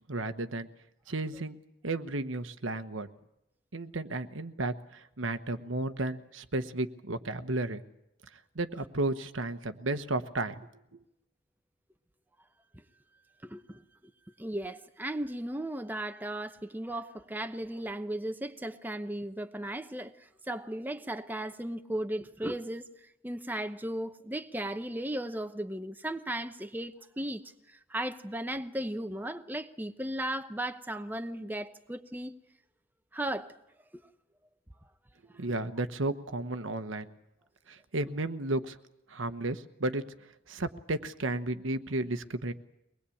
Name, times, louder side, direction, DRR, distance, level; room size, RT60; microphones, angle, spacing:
voice 1, 0.1-0.7 1.1-1.6 1.8-3.1 3.7-7.8 8.5-10.7 35.3-37.1 37.7-38.8 39.1-40.0 40.5-42.5, right 2 dB, 75° right, 1.2 m, -33 dB
voice 2, 13.4-13.8 14.4-32.3 33.1-33.5 33.9-34.0 35.3-35.4, right 1 dB, 10° right, 0.9 m, -36 dB
23.5 x 20.5 x 8.6 m
head